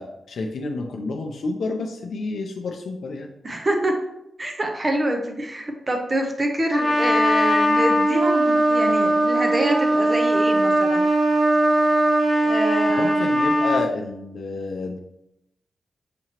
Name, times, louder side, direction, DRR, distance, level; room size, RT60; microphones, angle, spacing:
voice 1, 0.0-3.3 12.9-15.0, left 3 dB, 70° left, 2 dB, 0.4 m, -29 dB
voice 2, 3.4-3.9 4.4-11.1 12.4-13.3, right 1 dB, 30° right, 3 dB, 0.6 m, -26 dB
Trumpet, 6.7-13.8, right 1 dB, ahead, 0.8 m, -19 dB
5.9 x 2.8 x 2.8 m, 0.85 s
cardioid pair, 95°, 0 cm